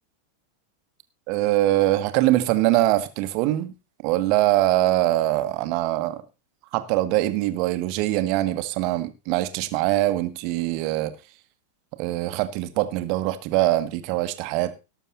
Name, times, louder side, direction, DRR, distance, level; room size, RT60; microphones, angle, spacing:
voice 1, 1.3-3.7 4.0-6.2 6.7-11.1 12.0-14.7, right 15 dB, 45° right, 1.4 m, -23 dB
18.0 x 6.9 x 4.1 m
figure-of-eight pair, 90°, 0 cm